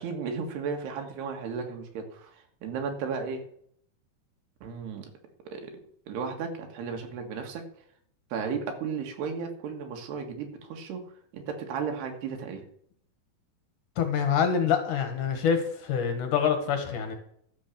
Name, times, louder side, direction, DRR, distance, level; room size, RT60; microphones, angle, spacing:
voice 1, 0.0-3.4 4.6-5.1 5.5-5.7 6.1-7.7 8.3-11.0 11.3-12.6, right 5 dB, 90° right, 4 dB, 3.9 m, -34 dB
voice 2, 14.0-17.2, left 7 dB, 60° left, 6 dB, 2.7 m, -26 dB
12.0 x 7.3 x 6.7 m, 0.66 s
omnidirectional pair, 4.5 m